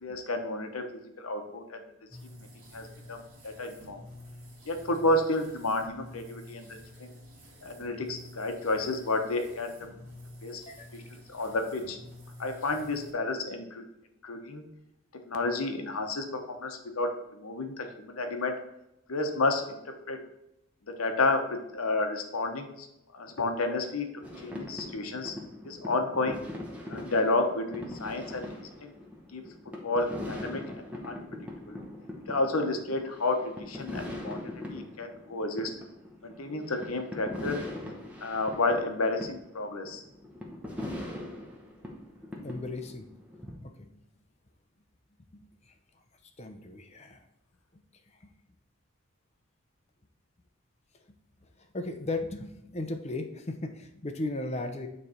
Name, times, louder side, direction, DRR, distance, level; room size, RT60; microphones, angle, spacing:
voice 1, 0.0-1.8 2.3-2.5 2.7-4.0 4.7-7.1 7.6-9.7 10.4-10.6 10.9-12.0 12.4-13.8 14.2-14.6 15.2-18.5 19.1-19.8 20.1-20.2 21.0-22.9 23.1-25.3 25.6-26.4 26.9-28.9 29.3-29.4 29.8-30.6 31.0-31.2 31.7-31.8 32.3-35.7 36.2-37.6 38.2-40.0, left 2 dB, 85° left, 5 dB, 1.0 m, -31 dB
sound 1, 2.1-13.1, left 1 dB, 40° right, 2.1 m, -50 dB
sound 2, 24.2-43.6, left 1 dB, 5° right, 0.9 m, -41 dB
voice 2, 42.4-43.1 43.6-43.9 45.3-45.7 46.4-47.2 48.2-48.3 51.4-54.9, left 2 dB, 30° left, 6 dB, 0.6 m, -36 dB
9.2 x 3.3 x 4.3 m, 0.88 s
head